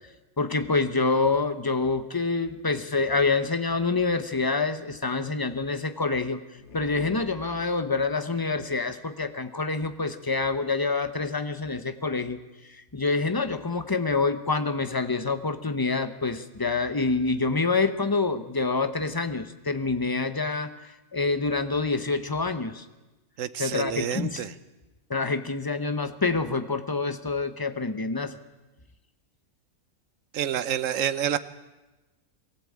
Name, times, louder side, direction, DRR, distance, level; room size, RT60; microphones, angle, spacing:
voice 1, 0.4-6.4 6.7-12.4 12.9-20.7 21.1-22.8 23.6-24.4 25.1-28.4, left 3 dB, 20° left, 11 dB, 0.9 m, -26 dB
sound 1, 6.6-8.1, left 5 dB, 55° left, 1.5 m, -44 dB
voice 2, 23.4-24.5 30.3-31.4, right 9 dB, 70° right, 14 dB, 1.2 m, -28 dB
22.0 x 14.5 x 8.6 m, 1.1 s
omnidirectional pair, 1.4 m